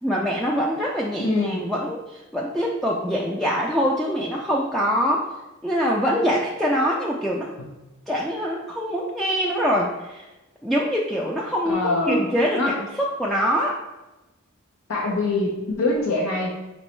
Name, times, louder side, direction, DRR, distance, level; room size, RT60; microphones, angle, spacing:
voice 1, 0.0-5.3 5.6-7.5 8.1-10.3 10.6-13.8, equal, ahead, -4 dB, 0.3 m, -24 dB
voice 2, 1.2-1.6 7.6-7.7 11.7-12.3 12.6-12.8 14.9-16.5, left 2 dB, 75° left, -1 dB, 0.6 m, -24 dB
5.3 x 2.9 x 3.1 m, 1.0 s
head